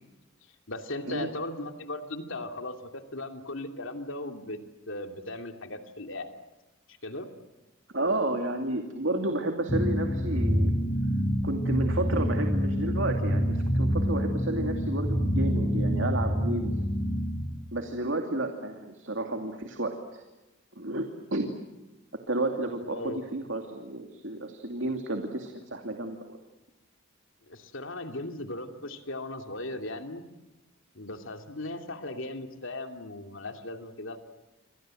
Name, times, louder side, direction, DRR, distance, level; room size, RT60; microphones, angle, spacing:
voice 1, 0.7-4.6 4.9-6.4 6.9-7.3 22.8-23.2 27.5-30.3 30.9-34.2, left 2 dB, 70° left, 5 dB, 2.8 m, -37 dB
voice 2, 7.9-10.7 11.4-16.7 17.7-20.2 20.8-21.5 22.3-26.4, right 2 dB, 65° right, 4 dB, 2.6 m, -31 dB
sound 1, 9.7-17.5, equal, 25° left, 4.3 m, -27 dB
29.0 x 25.5 x 7.8 m, 1.1 s
head